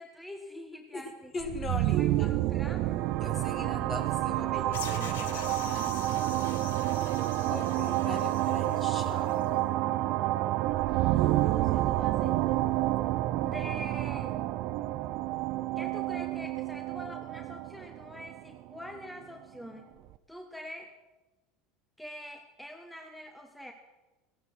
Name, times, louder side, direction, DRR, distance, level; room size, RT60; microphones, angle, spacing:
voice 1, 0.0-1.3 2.0-3.1 11.2-12.5 13.4-14.6 15.8-19.9 20.3-20.9 22.0-23.7, equal, 5° left, 4 dB, 1.3 m, -45 dB
voice 2, 0.9-2.3 3.2-6.0 7.5-9.6, left 3 dB, 30° left, 5 dB, 2.4 m, -40 dB
sound 1, 1.4-19.1, right 15 dB, 65° right, 0.6 m, -29 dB
sound 2, 4.7-9.5, left 8 dB, 90° left, 1.2 m, -45 dB
15.5 x 12.0 x 6.3 m, 1.1 s
supercardioid pair, 95°, 0 cm